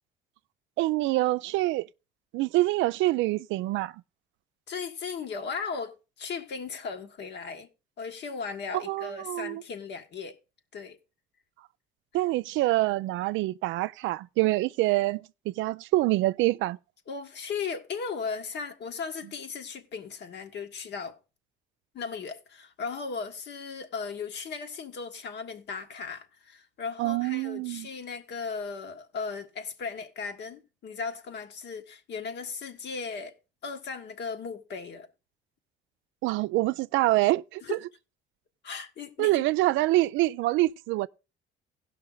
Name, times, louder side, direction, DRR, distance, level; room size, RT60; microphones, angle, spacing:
voice 1, 0.8-1.9 2.3-3.9 8.7-9.6 12.1-16.8 27.0-27.9 36.2-37.8 39.2-41.1, right 18 dB, 80° right, 0.4 m, -26 dB
voice 2, 4.7-7.7 8.0-10.4 10.7-11.0 17.1-21.2 21.9-33.4 33.6-35.1 37.6-37.8 38.6-39.5, left 5 dB, 65° left, 1.5 m, -37 dB
16.5 x 5.7 x 3.8 m
cardioid pair, 90°, 19 cm